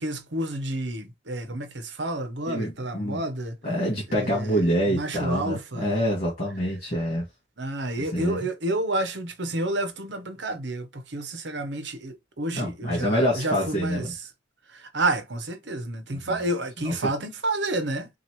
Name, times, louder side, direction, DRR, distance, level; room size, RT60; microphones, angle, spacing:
voice 1, 0.0-3.6 4.1-6.0 7.6-14.0 14.7-18.1, right 1 dB, 70° right, 1.0 m, -30 dB
voice 2, 2.5-3.2 3.6-7.3 8.0-8.5 12.5-14.1 16.1-16.4 16.8-17.1, equal, 35° left, 2.2 m, -26 dB
6.0 x 2.7 x 3.1 m
head